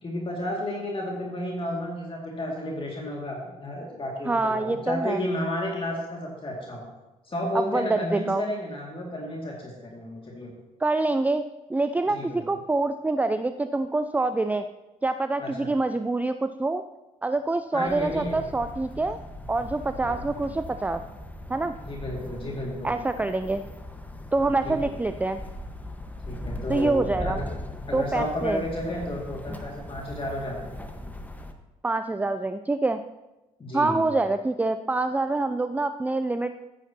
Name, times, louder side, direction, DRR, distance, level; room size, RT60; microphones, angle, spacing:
voice 1, 0.0-6.8 7.2-10.5 12.1-12.6 15.4-15.7 17.7-18.4 20.0-20.2 21.8-22.9 24.4-24.8 26.2-27.5 27.9-30.7 33.6-34.0, left 1 dB, 30° left, -2 dB, 2.3 m, -32 dB
voice 2, 4.3-5.2 7.7-8.4 10.8-11.4 11.7-14.7 15.0-16.8 17.2-19.2 19.5-21.0 21.5-21.7 22.8-23.6 24.3-25.4 26.7-27.4 27.9-28.6 31.8-33.0 33.7-36.6, right 2 dB, 10° right, 10 dB, 0.4 m, -26 dB
sound 1, 17.9-31.5, left 1 dB, 10° left, 1.3 m, -39 dB
13.5 x 9.9 x 2.9 m, 1.0 s
hypercardioid pair, 50°, 17 cm